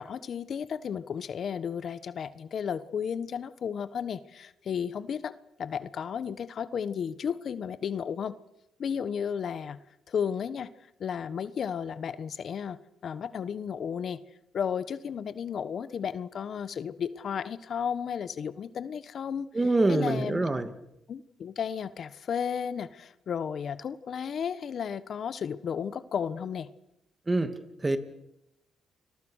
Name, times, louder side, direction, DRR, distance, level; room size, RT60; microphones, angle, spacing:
voice 1, 0.0-5.3 5.6-8.3 8.8-9.8 10.1-10.7 11.0-12.8 13.0-14.2 14.5-19.5 19.9-20.4 21.1-26.7, left 7 dB, 55° left, 14 dB, 1.3 m, -33 dB
voice 2, 19.5-20.7 27.3-28.0, right 2 dB, 20° right, 10 dB, 2.6 m, -26 dB
29.5 x 22.5 x 6.5 m, 0.85 s
cardioid pair, 90°, 0 cm